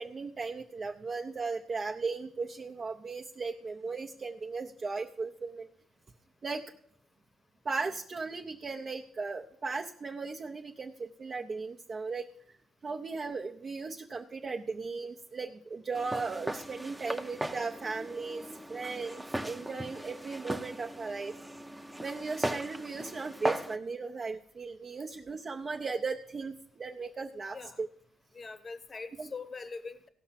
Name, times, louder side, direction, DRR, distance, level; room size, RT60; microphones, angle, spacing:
voice 1, 0.0-5.7 6.4-6.6 7.6-12.3 12.8-18.4 18.7-21.3 22.0-27.9 29.2-29.3, right 4 dB, 40° right, 1 dB, 0.7 m, -37 dB
Walk footsteps, 15.9-23.8, right 1 dB, 5° right, 0.7 m, -38 dB
voice 2, 28.3-30.1, left 4 dB, 35° left, 11 dB, 0.9 m, -42 dB
16.5 x 5.8 x 5.8 m, 0.64 s
cardioid pair, 90°, 0 cm